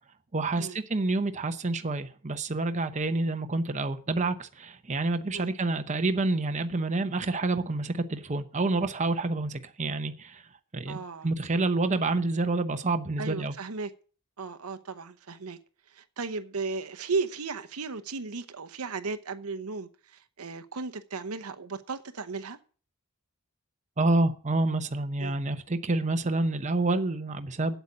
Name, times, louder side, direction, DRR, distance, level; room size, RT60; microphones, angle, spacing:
voice 1, 0.3-10.4 10.7-13.5 24.0-27.8, right 2 dB, 35° right, 0.8 m, -28 dB
voice 2, 10.9-11.3 13.2-13.9 14.4-15.6 15.9-22.6 25.2-25.4, right 4 dB, 80° right, 0.9 m, -35 dB
8.2 x 8.1 x 8.4 m
head